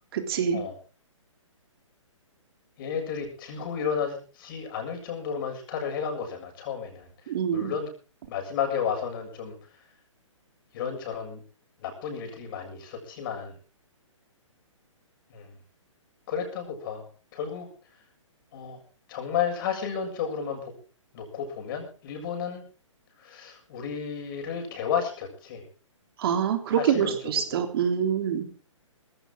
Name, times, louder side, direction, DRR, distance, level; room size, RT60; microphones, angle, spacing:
voice 1, 0.1-0.6 7.3-7.7 26.2-28.5, right 8 dB, 45° right, 6 dB, 3.5 m, -25 dB
voice 2, 2.8-7.9 8.3-9.9 10.7-11.4 11.8-13.6 15.3-15.5 16.3-17.1 17.3-17.7 18.5-18.8 19.1-20.7 21.1-22.6 23.2-25.7 26.7-27.3, left 7 dB, 40° left, 5 dB, 7.3 m, -32 dB
19.5 x 16.5 x 3.8 m, 0.38 s
figure-of-eight pair, 130°, 17 cm